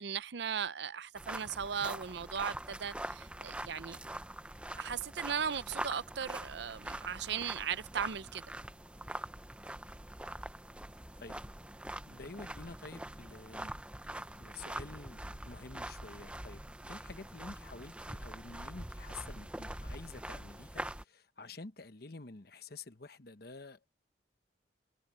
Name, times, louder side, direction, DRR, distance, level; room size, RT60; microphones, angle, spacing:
voice 1, 0.0-4.0 4.8-8.4, right 7 dB, 65° right, 0.6 m, -37 dB
sound 1, 1.1-21.0, right 1 dB, 5° right, 0.7 m, -44 dB
voice 2, 12.1-13.7 14.2-23.9, left 3 dB, 55° left, 1.1 m, -49 dB
head